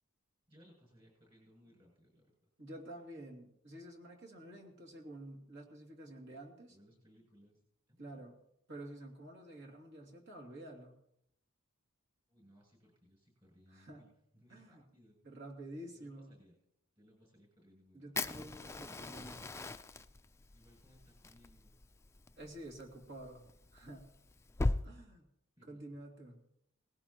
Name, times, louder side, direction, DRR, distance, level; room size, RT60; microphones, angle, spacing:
voice 1, 0.5-2.3 6.7-7.6 7.9-8.0 12.3-15.2 15.8-16.6 17.0-18.1 20.5-21.8 22.4-22.7 25.5-25.8, equal, 25° right, -1 dB, 7.6 m, -64 dB
voice 2, 2.6-6.7 8.0-8.3 8.7-11.0 13.7-14.0 14.5-14.8 15.2-16.3 17.9-19.5 22.4-23.4 23.7-24.1 24.8-25.3 25.7-26.4, right 1 dB, 60° right, 1 dB, 2.6 m, -50 dB
Fire, 18.2-24.8, left 2 dB, 15° left, 0.4 m, -40 dB
19.0 x 17.0 x 3.0 m, 0.76 s
head